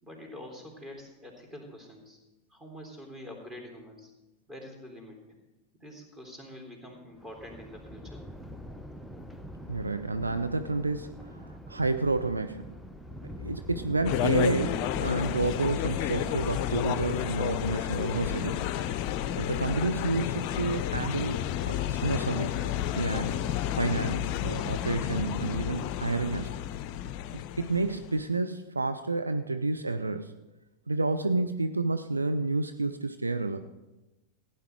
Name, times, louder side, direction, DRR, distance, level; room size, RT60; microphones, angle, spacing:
voice 1, 0.0-2.2 2.5-4.1 4.5-5.2 5.8-8.2, left 1 dB, 20° right, 1 dB, 3.5 m, -46 dB
Thunder, 7.1-24.5, equal, ahead, 0.8 m, -45 dB
voice 2, 9.7-12.8 13.4-18.7 19.4-23.4 23.8-26.5 27.3-30.3 30.9-33.6, right 3 dB, 80° right, 9 dB, 0.5 m, -30 dB
sound 1, 14.0-28.3, left 12 dB, 40° left, 0.5 m, -31 dB
15.5 x 9.7 x 4.6 m, 1.0 s
figure-of-eight pair, 90°, 0 cm